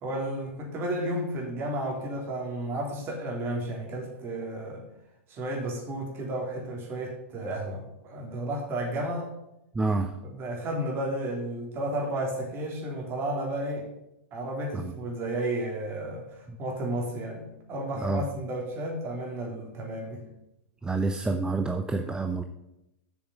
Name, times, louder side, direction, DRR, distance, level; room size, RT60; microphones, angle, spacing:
voice 1, 0.0-4.8 5.3-9.3 10.2-13.9 14.3-20.2, right 1 dB, 35° right, 0 dB, 3.2 m, -32 dB
voice 2, 9.7-10.1 14.7-14.9 16.5-16.6 18.0-18.2 20.8-22.4, right 3 dB, 10° right, 6 dB, 0.6 m, -28 dB
7.3 x 6.5 x 7.2 m, 0.87 s
hypercardioid pair, 110°, 7 cm